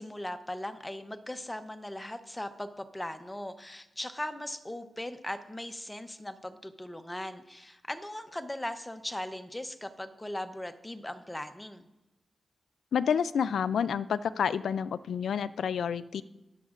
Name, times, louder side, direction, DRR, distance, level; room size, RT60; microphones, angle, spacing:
voice 1, 0.0-11.8, left 1 dB, 10° left, 9 dB, 0.7 m, -39 dB
voice 2, 12.9-16.2, left 7 dB, 85° left, 15 dB, 0.3 m, -29 dB
21.5 x 7.1 x 2.5 m, 0.97 s
wide cardioid pair, 95°, 0 cm